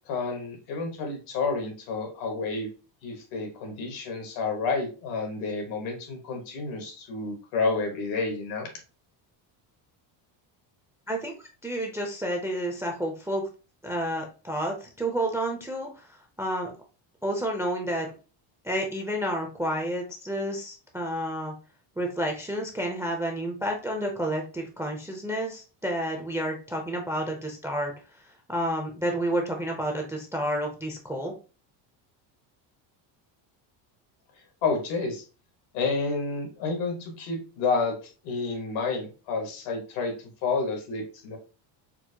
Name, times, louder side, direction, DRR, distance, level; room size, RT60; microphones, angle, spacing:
voice 1, 0.1-2.7 3.0-8.7 34.6-35.2 35.7-38.0 38.2-40.1 40.4-41.4, left 4 dB, 85° left, 3 dB, 1.4 m, -30 dB
voice 2, 11.1-13.5 13.8-16.7 17.2-18.1 18.6-21.5 22.0-27.9 28.5-31.3, right 1 dB, 5° right, 2 dB, 0.3 m, -30 dB
4.4 x 2.1 x 2.7 m, 0.34 s
cardioid pair, 125°, 48 cm